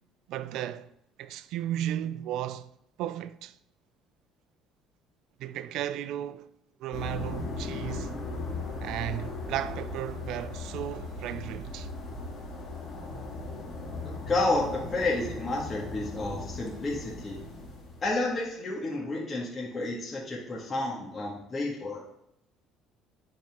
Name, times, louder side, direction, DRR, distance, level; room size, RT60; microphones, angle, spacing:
voice 1, 0.3-0.9 1.2-2.7 3.0-3.5 5.4-6.5 6.8-8.1 8.8-11.9, right 12 dB, 70° right, 0.4 m, -34 dB
sound 1, 6.9-18.3, left 2 dB, 50° left, 2.3 m, -38 dB
voice 2, 14.3-17.4 18.0-22.0, left 2 dB, 30° left, 1.7 m, -30 dB
10.5 x 4.2 x 3.6 m
supercardioid pair, 85°, 0 cm